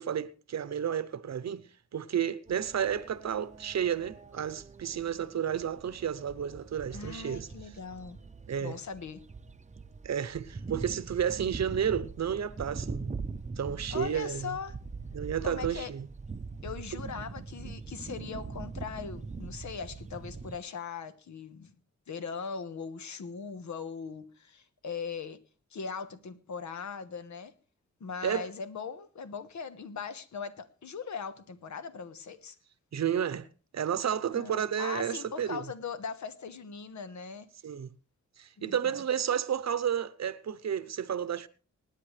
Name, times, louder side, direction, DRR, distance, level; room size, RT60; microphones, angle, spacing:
voice 1, 0.0-1.6 1.9-7.5 8.5-8.8 10.0-13.2 13.6-14.6 15.1-16.1 28.2-28.5 32.9-33.5 33.7-35.6 37.6-37.9 38.4-41.5, right 8 dB, 65° right, 0.8 m, -31 dB
sound 1, 2.5-20.6, right 4 dB, 25° right, 0.7 m, -42 dB
voice 2, 6.9-8.2 8.6-9.2 13.9-14.8 15.4-15.9 16.6-21.7 22.1-25.4 25.7-27.5 28.0-32.6 34.3-37.5 38.6-39.0, left 6 dB, 75° left, 1.2 m, -40 dB
25.5 x 9.6 x 3.3 m
wide cardioid pair, 150°, 29 cm